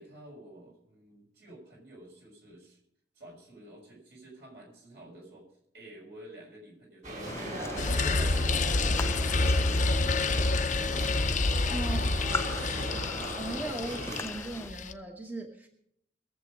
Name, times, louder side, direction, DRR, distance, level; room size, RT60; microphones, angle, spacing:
voice 1, 0.0-2.8 3.1-5.5 5.7-8.5 8.8-11.4 11.8-12.7, right 1 dB, 65° right, 0 dB, 6.2 m, -50 dB
sound 1, 7.0-14.2, right 1 dB, 45° right, 4.3 m, -39 dB
sound 2, 7.2-14.7, left 3 dB, 15° left, 0.4 m, -40 dB
sound 3, 7.8-14.9, left 3 dB, 45° left, 0.7 m, -28 dB
voice 2, 11.7-12.1 12.9-15.7, right 2 dB, 10° right, 3 dB, 1.0 m, -38 dB
21.5 x 7.6 x 5.3 m, 0.72 s
head